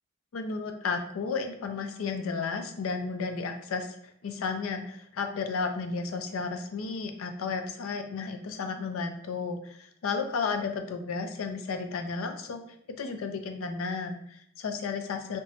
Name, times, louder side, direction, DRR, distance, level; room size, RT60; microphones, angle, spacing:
voice 1, 0.3-4.0 4.2-12.6 13.0-15.4, left 4 dB, 90° left, 6 dB, 0.4 m, -33 dB
2.9 x 2.2 x 2.7 m, 0.70 s
head